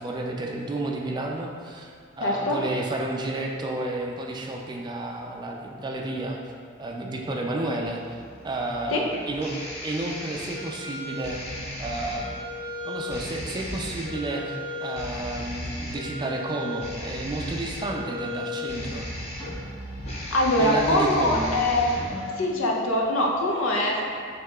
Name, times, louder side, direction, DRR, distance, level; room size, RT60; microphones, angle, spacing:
voice 1, 0.0-6.4 6.8-8.0 8.4-11.4 11.8-12.4 12.8-19.1 20.6-21.6, right 2 dB, 20° right, 0 dB, 0.3 m, -31 dB
voice 2, 2.2-2.6 8.9-9.0 20.3-21.9 22.4-24.0, left 1 dB, 90° left, -1 dB, 0.6 m, -23 dB
sound 1, 7.8-22.3, left 1 dB, 30° left, 0.7 m, -35 dB
6.0 x 2.8 x 2.3 m, 2.1 s
head